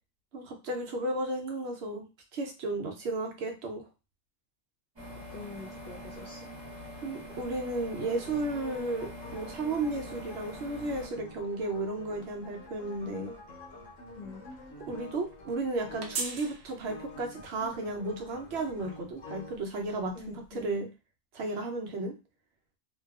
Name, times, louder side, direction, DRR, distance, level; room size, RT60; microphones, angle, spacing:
voice 1, 0.3-2.0 2.3-3.8 7.0-13.3 14.9-20.9 21.3-22.2, right 2 dB, 65° right, 3 dB, 0.8 m, -34 dB
sound 1, 5.0-11.1, equal, 25° right, 0.9 m, -44 dB
voice 2, 5.3-6.5 14.1-14.5 20.1-20.8, left 3 dB, 55° left, -4 dB, 0.8 m, -45 dB
sound 2, 7.3-20.7, right 4 dB, 90° right, 1.0 m, -48 dB
sound 3, 8.0-19.6, left 2 dB, 85° left, 1.1 m, -48 dB
2.7 x 2.3 x 2.3 m, 0.29 s
omnidirectional pair, 1.3 m